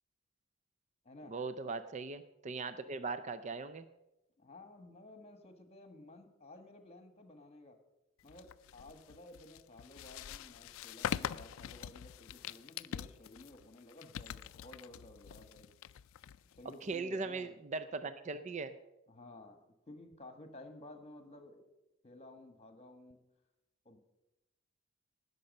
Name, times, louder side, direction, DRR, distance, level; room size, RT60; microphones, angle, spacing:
voice 1, 1.3-3.9 16.8-18.7, right 4 dB, 35° right, 12 dB, 0.4 m, -39 dB
voice 2, 4.4-7.8 8.2-15.7 16.6-17.5 19.1-21.7 22.0-23.2 23.8-24.0, left 1 dB, 30° left, 8 dB, 1.3 m, -54 dB
sound 1, 8.3-16.9, left 9 dB, 75° left, 0.3 m, -44 dB
18.5 x 6.8 x 5.3 m, 0.95 s
head